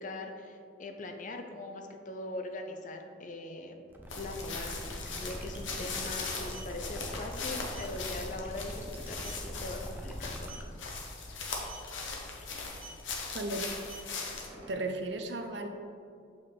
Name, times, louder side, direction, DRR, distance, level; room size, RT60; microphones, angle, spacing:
voice 1, 0.0-3.8 4.1-10.5, left 2 dB, 40° left, 4 dB, 0.5 m, -41 dB
sound 1, 3.9-10.6, equal, 10° right, 0.5 m, -43 dB
sound 2, 4.1-14.5, left 4 dB, 85° left, 0.9 m, -40 dB
sound 3, 6.5-6.7 7.7-7.9 8.4-8.5 8.9-9.0 9.2-9.5 10.4-10.7 11.6-11.9 12.8-13.1 13.7-15.0, right 5 dB, 30° right, 1.6 m, -49 dB
voice 2, 13.3-13.6 14.7-15.7, right 2 dB, 65° right, 5 dB, 0.6 m, -35 dB
6.8 x 5.5 x 3.3 m, 2.4 s
head